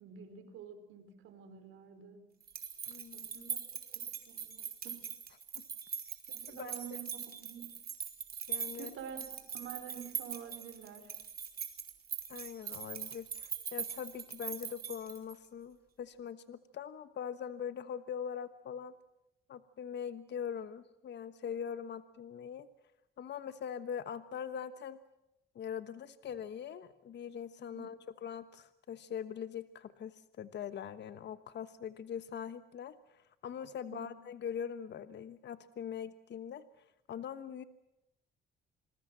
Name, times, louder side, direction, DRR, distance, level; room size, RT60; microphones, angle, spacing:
voice 1, 0.0-2.3 3.1-3.6 3.9-5.0 6.3-7.7 8.7-11.1 27.7-27.9 33.9-34.1, right 7 dB, 80° right, 8 dB, 4.2 m, -48 dB
sound 1, 2.4-15.5, right 7 dB, 50° right, 3.7 m, -42 dB
voice 2, 2.9-3.5 5.6-5.7 6.5-6.7 8.5-8.9 12.3-18.9 19.5-22.7 23.2-25.0 25.5-36.6 37.1-37.6, left 8 dB, 60° left, 13 dB, 1.2 m, -42 dB
27.5 x 21.0 x 7.5 m, 0.85 s
cardioid pair, 90°, 20 cm